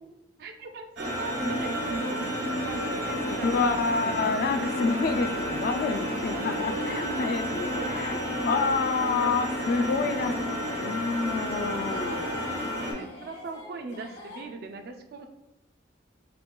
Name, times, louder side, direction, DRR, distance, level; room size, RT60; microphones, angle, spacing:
voice 1, 0.4-3.7 3.9-4.3 7.6-8.1 9.2-9.3 10.2-10.4 12.7-15.3, right 3 dB, 60° right, 6 dB, 0.4 m, -39 dB
sound 1, 1.0-12.9, equal, 75° right, 1.1 m, -31 dB
sound 2, 1.8-14.5, left 1 dB, 70° left, 1.3 m, -47 dB
voice 2, 3.4-10.3 10.8-12.3, left 4 dB, 50° left, 8 dB, 0.3 m, -28 dB
6.6 x 2.2 x 2.3 m, 0.92 s
head